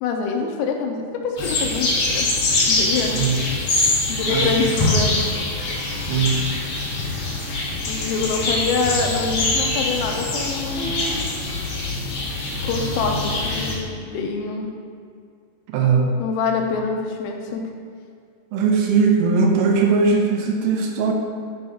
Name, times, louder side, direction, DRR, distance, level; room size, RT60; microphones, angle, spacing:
voice 1, 0.0-2.3 2.7-3.2 4.1-5.3 7.9-11.0 12.6-14.7 16.2-17.6, left 4 dB, 85° left, 2 dB, 3.4 m, -25 dB
sound 1, 1.4-13.7, left 2 dB, 60° left, 3.6 m, -24 dB
voice 2, 6.1-6.5 15.7-16.2 18.5-21.1, right 4 dB, 85° right, 1 dB, 3.3 m, -19 dB
10.5 x 6.3 x 2.9 m, 2.2 s
omnidirectional pair, 5.8 m